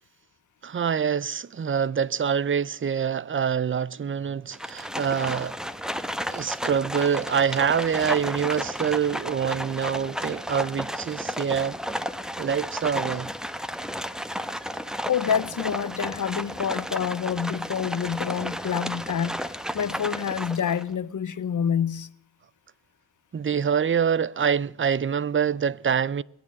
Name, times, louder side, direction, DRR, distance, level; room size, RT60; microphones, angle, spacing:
voice 1, 0.6-5.6 6.3-11.8 12.4-13.3 23.3-26.2, right 7 dB, 35° right, 0.5 m, -25 dB
Livestock farm animals working animals, 4.5-20.9, equal, ahead, 0.9 m, -33 dB
voice 2, 15.1-22.1, left 8 dB, 55° left, 0.7 m, -27 dB
21.5 x 8.9 x 6.3 m
cardioid pair, 50°, 38 cm